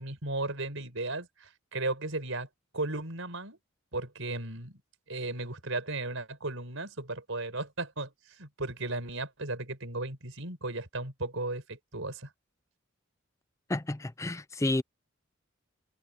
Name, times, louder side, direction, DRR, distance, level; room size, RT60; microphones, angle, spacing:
voice 1, 0.0-2.5 2.7-3.6 3.9-4.8 5.1-12.3, right 2 dB, 70° right, 5.2 m, -35 dB
voice 2, 13.7-14.8, left 2 dB, 15° left, 0.5 m, -30 dB
head